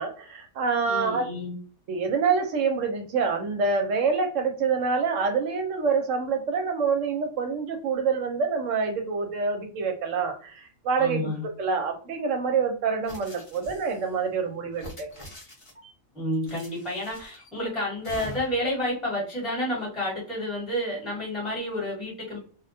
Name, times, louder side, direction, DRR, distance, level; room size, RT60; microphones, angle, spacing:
voice 1, 0.0-1.3 1.9-15.1, right 5 dB, 70° right, 4 dB, 0.9 m, -26 dB
voice 2, 0.9-1.6 11.0-11.4 16.1-22.4, left 1 dB, ahead, -5 dB, 0.9 m, -30 dB
sound 1, 13.0-14.1 14.7-15.9 16.4-17.5 18.0-18.7, equal, 30° left, 0.6 m, -44 dB
2.3 x 2.1 x 2.6 m, 0.42 s
omnidirectional pair, 1.4 m